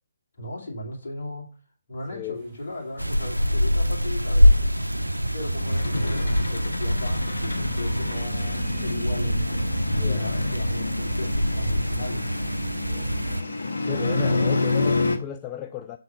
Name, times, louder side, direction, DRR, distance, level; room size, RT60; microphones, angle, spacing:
voice 1, 0.4-1.5 1.9-4.6 5.3-9.4 10.0-12.3, left 1 dB, 50° left, 2.6 m, -36 dB
voice 2, 2.1-2.4 10.0-10.3 12.9-13.1 13.8-16.0, left 9 dB, 20° left, 0.3 m, -35 dB
sound 1, 2.3-13.6, right 3 dB, 30° right, 2.4 m, -53 dB
sound 2, 3.0-13.4, equal, 90° right, 0.4 m, -24 dB
sound 3, 5.6-15.2, left 3 dB, 65° left, 1.3 m, -29 dB
7.0 x 3.9 x 5.5 m
figure-of-eight pair, 140°, 0 cm